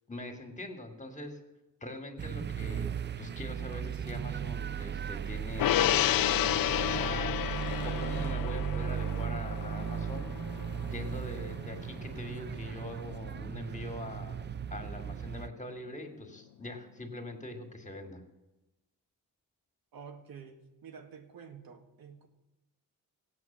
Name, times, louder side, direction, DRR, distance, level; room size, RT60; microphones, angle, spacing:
voice 1, 0.1-1.4 1.8-10.3 10.8-18.2, left 1 dB, 20° left, 5 dB, 2.8 m, -43 dB
sound 1, 2.2-15.5, right 8 dB, 30° right, 0.4 m, -36 dB
Gong, 5.6-12.2 12.6-12.7, left 12 dB, 70° left, 0.5 m, -31 dB
voice 2, 19.9-22.3, right 6 dB, 75° right, 4 dB, 2.0 m, -49 dB
16.5 x 8.5 x 7.6 m, 1.0 s
cardioid pair, 75°, 36 cm